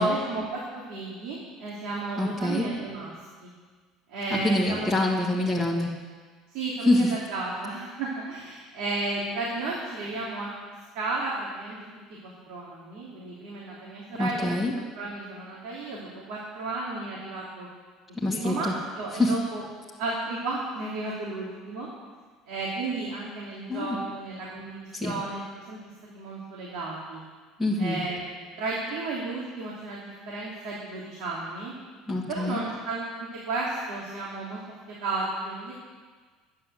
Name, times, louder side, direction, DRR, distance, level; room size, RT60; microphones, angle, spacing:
voice 1, 0.0-3.1 3.4-3.5 4.1-4.9 6.5-10.5 10.9-11.8 12.2-14.5 14.9-17.7 18.3-18.7 18.9-19.6 20.0-21.9 22.5-25.8 26.1-27.2 27.8-31.7 32.3-34.6 34.9-35.7, right 2 dB, 75° right, -5 dB, 3.1 m, -33 dB
voice 2, 2.2-2.7 4.4-5.9 6.8-7.1 14.2-14.7 18.2-18.7 19.2-19.3 23.7-24.0 24.9-25.1 27.6-28.0 32.1-32.6, left 2 dB, 5° right, -4 dB, 1.7 m, -25 dB
12.0 x 9.8 x 7.7 m, 1.5 s
cardioid pair, 165°, 0 cm